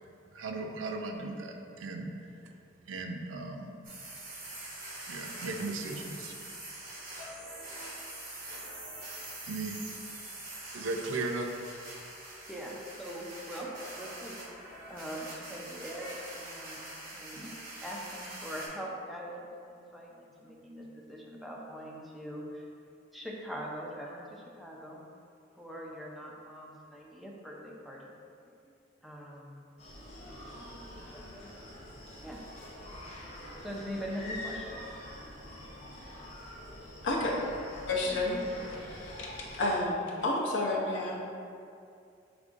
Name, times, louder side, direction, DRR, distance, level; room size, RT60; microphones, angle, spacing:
voice 1, 0.3-2.1 2.9-3.7 5.1-6.3 9.4-9.8 10.7-11.5, right 3 dB, 80° right, 3 dB, 0.4 m, -36 dB
sound 1, 3.8-18.7, right 1 dB, 45° right, 1.1 m, -44 dB
voice 2, 12.5-14.4 14.9-17.5 17.8-22.7 23.1-25.0 25.5-28.1 28.6-28.7 29.0-29.7 30.2-32.5 32.9-33.0 33.6-34.9 37.9-38.7, equal, ahead, -3 dB, 0.4 m, -43 dB
Screaming, 29.8-39.7, left 1 dB, 35° left, 0.8 m, -45 dB
voice 3, 37.9-38.4 38.9-39.3 39.5-41.2, left 2 dB, 70° left, -3 dB, 0.7 m, -30 dB
5.0 x 3.5 x 2.5 m, 2.5 s
head